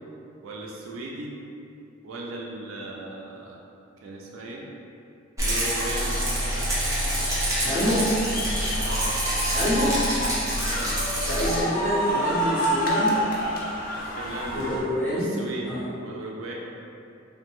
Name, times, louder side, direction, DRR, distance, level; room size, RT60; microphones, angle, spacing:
voice 1, 0.4-1.3 2.0-3.6 4.0-4.6 5.4-6.2 8.8-9.1 10.6-11.0 13.9-14.7 15.1-15.7 16.0-16.5, right 2 dB, 75° right, -2 dB, 0.4 m, -37 dB
Rattle, 5.4-11.6, right 1 dB, 15° right, 0.5 m, -27 dB
sound 1, 5.6-14.8, equal, 45° left, 0.4 m, -30 dB
voice 2, 7.6-8.1 9.5-10.0 11.3-13.2 14.5-15.3 15.6-15.8, equal, 10° left, -16 dB, 1.3 m, -26 dB
2.5 x 2.2 x 3.0 m, 2.6 s
head